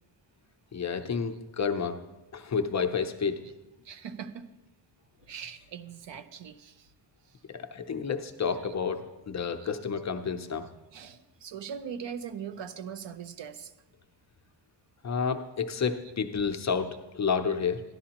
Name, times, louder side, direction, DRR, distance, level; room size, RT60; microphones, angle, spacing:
voice 1, 0.7-2.0 2.3-3.4 7.5-10.7 15.0-17.8, left 6 dB, 35° left, 6 dB, 0.6 m, -30 dB
voice 2, 3.8-4.5 5.3-6.9 7.3-7.4 8.5-8.6 9.6-9.7 10.9-13.7, right 7 dB, 65° right, 11 dB, 0.7 m, -41 dB
13.5 x 11.0 x 2.9 m, 1.1 s
wide cardioid pair, 145°, 47 cm